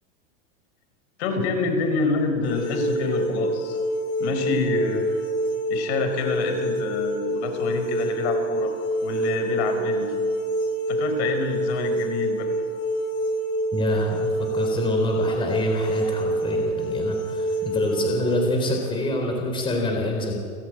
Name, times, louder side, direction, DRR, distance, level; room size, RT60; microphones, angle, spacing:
voice 1, 1.2-3.8 4.2-5.1 5.7-8.7 9.0-10.1 10.9-12.5, left 4 dB, 55° left, 6 dB, 4.9 m, -27 dB
sound 1, 2.4-18.4, right 1 dB, 75° left, 7.9 m, -26 dB
voice 2, 13.7-20.3, left 1 dB, 15° left, 1 dB, 3.9 m, -26 dB
30.0 x 15.0 x 9.0 m, 2.2 s
supercardioid pair, 160°, 38 cm